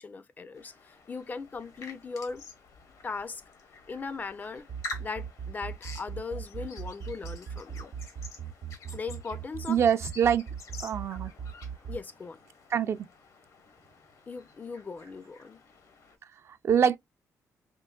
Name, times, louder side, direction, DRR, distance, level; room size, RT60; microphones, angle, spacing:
voice 1, 0.0-2.4 3.0-3.4 3.9-4.7 5.0-7.9 8.9-9.8 11.9-12.4 14.3-15.6, left 4 dB, 30° left, 0.4 m, -38 dB
sound 1, 0.5-16.2, left 3 dB, 85° left, 1.1 m, -48 dB
sound 2, 4.6-12.0, right 7 dB, 85° right, 0.7 m, -38 dB
voice 2, 9.7-10.4 10.8-11.3 12.7-13.0 16.6-17.0, right 8 dB, 50° right, 0.4 m, -24 dB
4.4 x 2.8 x 2.2 m
cardioid pair, 135°, 6 cm